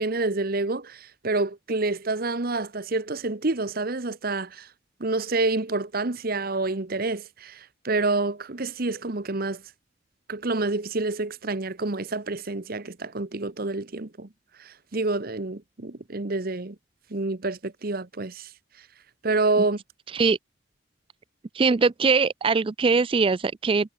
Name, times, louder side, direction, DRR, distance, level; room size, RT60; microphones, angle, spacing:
voice 1, 0.0-4.7 5.0-9.6 10.3-14.3 14.6-16.8 17.1-18.5 19.2-19.8, right 3 dB, 45° right, 1.1 m, -28 dB
voice 2, 21.5-23.9, right 4 dB, 25° right, 0.3 m, -22 dB
head